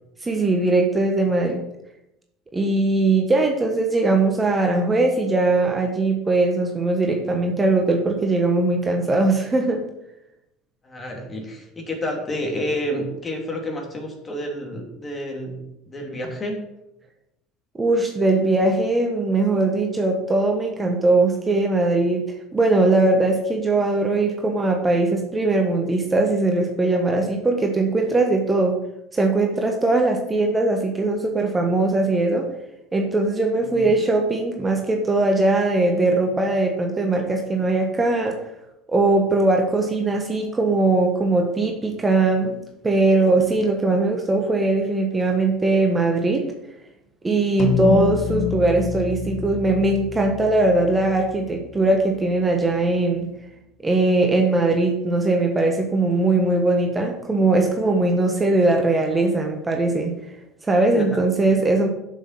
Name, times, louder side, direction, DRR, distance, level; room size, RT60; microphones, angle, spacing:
voice 1, 0.2-1.6 2.5-9.8 17.7-22.3 22.5-28.8 29.1-32.5 32.9-38.4 38.9-46.5 47.2-53.3 53.8-60.1 60.6-61.9, right 2 dB, 20° right, 2 dB, 1.4 m, -20 dB
voice 2, 10.8-16.6 33.5-33.9 60.9-61.2, equal, 25° left, 1 dB, 3.0 m, -30 dB
sound 1, 47.6-52.2, left 8 dB, 45° left, 0.9 m, -28 dB
7.8 x 6.5 x 5.9 m, 0.88 s
figure-of-eight pair, 65°, 0 cm